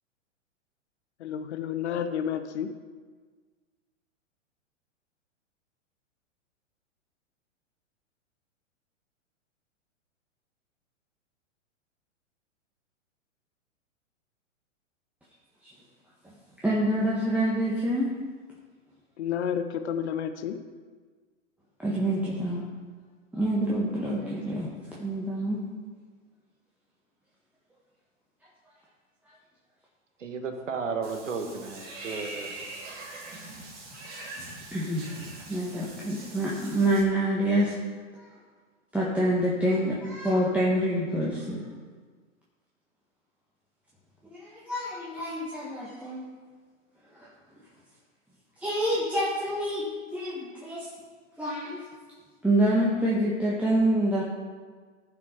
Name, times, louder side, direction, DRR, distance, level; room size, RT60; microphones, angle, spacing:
voice 1, 1.2-2.7 19.2-20.6 34.9-35.0, left 8 dB, 60° left, 8 dB, 0.9 m, -31 dB
voice 2, 16.6-18.1 21.8-22.6 23.3-24.7 25.0-25.6 34.7-35.1 35.5-37.7 38.2-38.3 38.9-41.6 44.3-46.2 47.2-47.3 48.6-49.9 50.1-50.9 51.4-51.8 52.4-54.2, right 1 dB, 5° right, -6 dB, 1.5 m, -26 dB
voice 3, 30.2-32.5, right 5 dB, 75° right, 6 dB, 1.6 m, -33 dB
Water / Bathtub (filling or washing), 31.0-37.0, right 2 dB, 25° right, 2.9 m, -42 dB
14.5 x 6.0 x 5.1 m, 1.5 s
hypercardioid pair, 115°, 38 cm